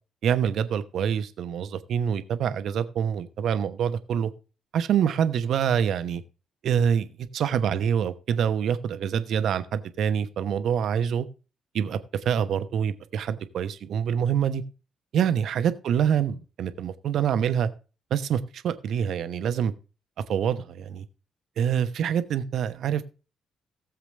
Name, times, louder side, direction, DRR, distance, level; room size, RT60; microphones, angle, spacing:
voice 1, 0.2-4.3 4.7-6.2 6.6-11.2 11.7-12.0 12.2-14.6 15.1-17.7 18.1-19.7 20.3-21.1 21.6-23.1, right 8 dB, 60° right, 12 dB, 1.0 m, -26 dB
17.5 x 7.4 x 3.2 m, 0.33 s
figure-of-eight pair, 40°, 0 cm